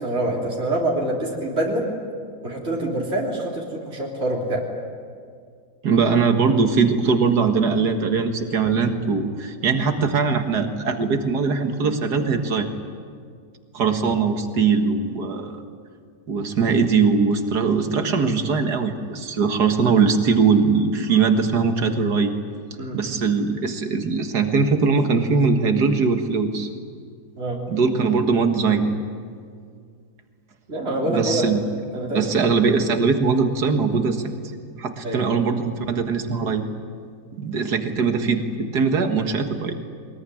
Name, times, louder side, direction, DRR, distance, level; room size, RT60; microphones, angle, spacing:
voice 1, 0.0-1.9 2.4-4.6 22.8-23.0 27.4-27.6 30.7-31.4 31.9-32.2 35.0-35.3, right 1 dB, 40° right, -4 dB, 3.8 m, -25 dB
voice 2, 5.8-12.7 13.7-15.6 16.3-22.3 22.9-26.7 27.7-28.9 31.1-31.6 32.1-34.4 34.8-36.6 37.4-39.8, right 5 dB, 90° right, 5 dB, 2.2 m, -21 dB
23.0 x 21.0 x 9.9 m, 2.1 s
omnidirectional pair, 1.7 m